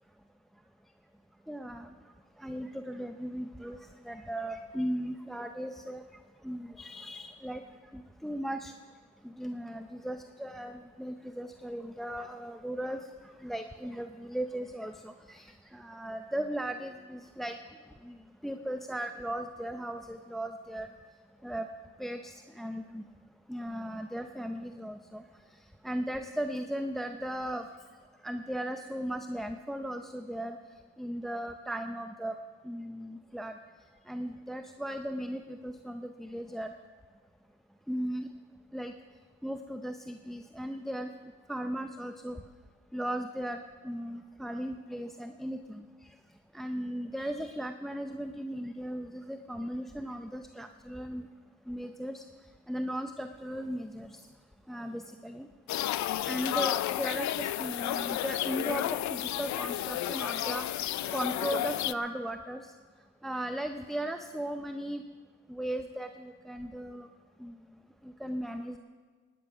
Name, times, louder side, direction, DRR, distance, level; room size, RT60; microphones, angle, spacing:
voice 1, 1.5-1.9 2.4-3.8 4.0-6.0 6.4-7.6 7.9-8.7 9.2-13.0 13.4-17.6 18.0-18.2 18.4-20.9 21.4-21.7 22.0-23.0 23.5-25.2 25.8-27.7 28.2-30.6 31.0-32.3 32.6-33.5 34.1-36.7 37.9-38.3 38.7-38.9 39.4-41.1 41.5-42.4 42.9-45.8 46.5-51.3 51.7-52.2 52.7-54.2 54.7-55.5 56.2-60.6 61.1-62.7 63.2-65.0 65.5-67.1 67.4-67.6 68.0-68.8, right 1 dB, ahead, 7 dB, 0.6 m, -37 dB
sound 1, 55.7-61.9, left 13 dB, 70° left, 0.5 m, -32 dB
19.0 x 10.0 x 5.8 m, 1.5 s
cardioid pair, 90°, 30 cm